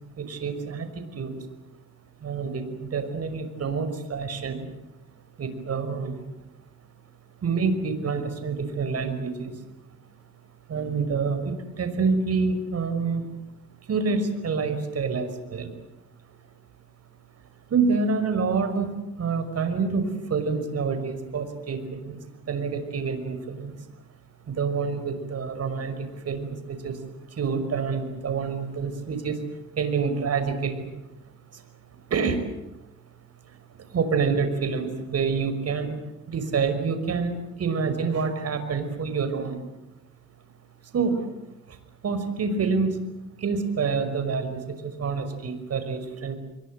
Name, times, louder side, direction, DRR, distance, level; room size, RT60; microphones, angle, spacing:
voice 1, 0.2-1.4 2.2-4.7 5.4-6.2 7.4-9.5 10.7-13.2 13.9-15.7 17.7-23.8 24.5-27.0 27.3-29.4 29.8-30.9 31.5-31.6 32.1-32.4 33.9-36.0 36.3-39.6 40.9-41.2 41.7-41.8 42.0-43.1 43.4-46.3, right 5 dB, 55° right, 9 dB, 5.8 m, -27 dB
28.0 x 23.0 x 7.8 m, 0.97 s
cardioid pair, 90°, 30 cm